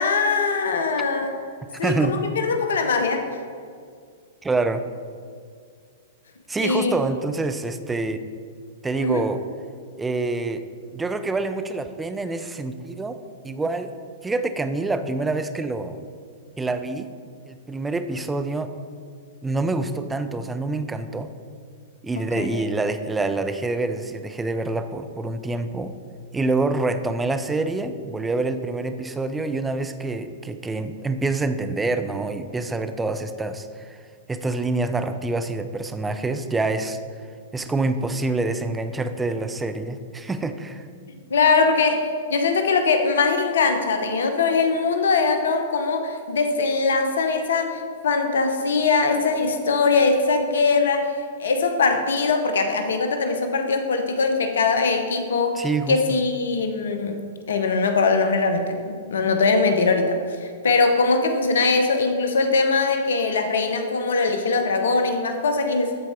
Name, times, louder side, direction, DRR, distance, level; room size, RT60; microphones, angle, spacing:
voice 1, 0.0-1.3 1.8-3.3 6.6-6.9 9.0-9.2 22.4-22.6 41.3-42.0 42.3-51.1 51.4-57.2 57.5-66.0, left 4 dB, 70° left, 6 dB, 0.8 m, -21 dB
voice 2, 1.8-2.2 4.4-4.8 6.5-8.2 8.8-9.4 10.0-10.6 10.9-13.2 13.4-13.9 14.2-16.0 16.6-17.1 17.5-18.7 19.4-21.3 22.0-25.9 26.3-34.0 34.3-37.0 37.5-40.9 55.5-56.2, right 3 dB, 10° right, 9 dB, 0.5 m, -26 dB
13.0 x 4.4 x 4.4 m, 2.1 s
figure-of-eight pair, 105°, 0 cm